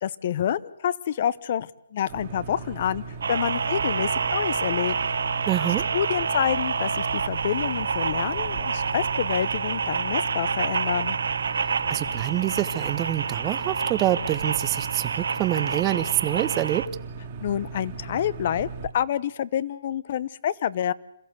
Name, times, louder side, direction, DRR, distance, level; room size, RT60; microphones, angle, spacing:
voice 1, 0.0-3.0 3.3-5.0 5.9-11.2 17.4-18.7 18.9-20.9, left 10 dB, 45° left, 19 dB, 0.8 m, -28 dB
sound 1, 2.1-18.9, right 4 dB, 40° right, 2.3 m, -38 dB
sound 2, 3.2-16.9, right 5 dB, 70° right, 0.7 m, -28 dB
voice 2, 5.5-5.8 11.6-16.8, right 14 dB, 20° right, 14 dB, 1.0 m, -26 dB
27.5 x 14.5 x 8.1 m, 0.80 s
hypercardioid pair, 145°, 0 cm